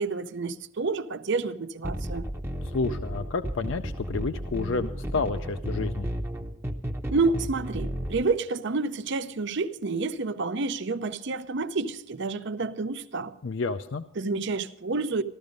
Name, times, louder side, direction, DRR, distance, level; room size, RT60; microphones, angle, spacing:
voice 1, 0.0-2.3 7.1-13.3 14.2-15.2, right 3 dB, 60° right, 0.6 m, -29 dB
sound 1, 1.8-8.2, equal, 10° right, 0.8 m, -33 dB
voice 2, 2.6-6.1 13.4-14.0, left 4 dB, 60° left, 0.5 m, -30 dB
14.5 x 13.0 x 5.2 m
head